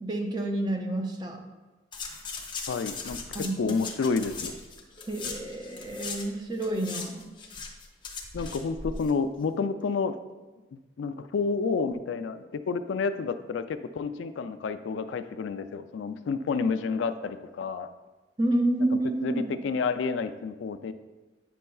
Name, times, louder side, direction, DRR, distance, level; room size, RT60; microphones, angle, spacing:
voice 1, 0.0-1.4 3.3-3.7 5.1-7.3 18.4-19.5, right 1 dB, 20° right, 3 dB, 0.6 m, -29 dB
sound 1, 1.9-6.3 6.5-9.1 9.4-9.5, left 4 dB, 25° left, 0.7 m, -38 dB
voice 2, 2.7-4.6 8.3-10.2 10.7-17.9 18.9-20.9, left 4 dB, 80° left, 10 dB, 0.3 m, -30 dB
8.3 x 5.4 x 2.3 m, 1.2 s
head